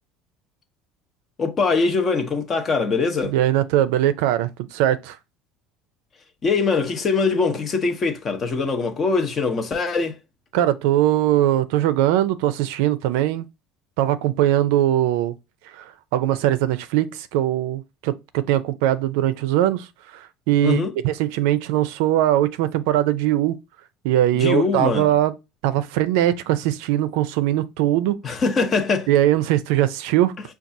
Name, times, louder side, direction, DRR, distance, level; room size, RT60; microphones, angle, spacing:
voice 1, 1.4-3.3 6.4-10.2 20.6-20.9 24.3-25.1 28.2-29.1, left 4 dB, 25° left, 0.7 m, -22 dB
voice 2, 3.2-5.2 10.5-13.5 14.0-15.4 15.7-23.6 24.0-25.3 25.6-28.2 29.1-30.3, right 12 dB, 80° right, 0.4 m, -21 dB
5.9 x 2.3 x 2.6 m
cardioid pair, 150°, 0 cm